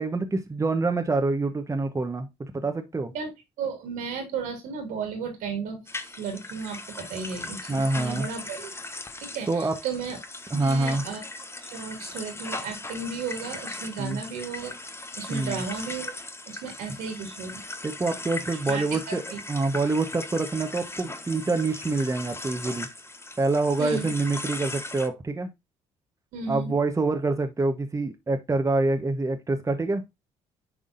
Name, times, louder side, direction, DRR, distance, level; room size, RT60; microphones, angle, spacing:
voice 1, 0.0-3.1 7.7-8.3 9.5-9.7 10.5-11.0 14.0-14.2 15.3-15.6 17.8-19.2 19.5-22.9 23.4-25.5 26.5-30.0, right 3 dB, 25° right, 1.1 m, -26 dB
voice 2, 3.6-8.7 9.2-10.2 10.5-11.2 11.7-14.8 15.2-16.1 16.5-17.6 18.7-19.4 23.8-24.1 26.3-26.7, right 5 dB, 80° right, 2.6 m, -34 dB
sound 1, 5.9-25.1, left 2 dB, 20° left, 1.0 m, -38 dB
10.5 x 3.6 x 2.5 m
supercardioid pair, 60°, 13 cm